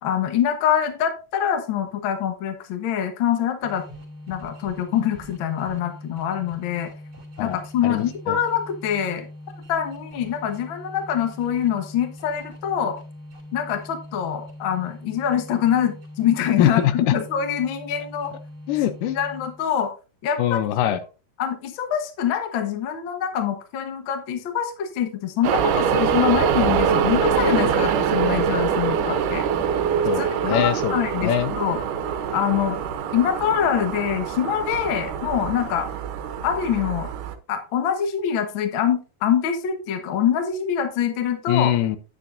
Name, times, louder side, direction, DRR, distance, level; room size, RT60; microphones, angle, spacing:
voice 1, 0.0-3.8 4.3-6.9 7.4-9.3 9.7-13.0 13.5-18.3 19.1-19.9 20.2-20.6 21.4-29.4 30.2-31.8 32.3-32.8 33.1-35.9 36.4-37.1 37.5-41.7, left 9 dB, 55° left, 6 dB, 1.5 m, -24 dB
sound 1, 3.6-19.8, left 1 dB, 25° right, 2.8 m, -42 dB
voice 2, 7.4-8.4 16.6-17.1 18.7-19.2 20.4-21.0 30.0-30.9 31.2-31.5 41.5-42.0, left 11 dB, 80° left, 11 dB, 2.3 m, -22 dB
sound 2, 25.4-37.3, right 7 dB, 75° right, 2.4 m, -24 dB
9.5 x 9.1 x 2.6 m, 0.33 s
omnidirectional pair, 3.8 m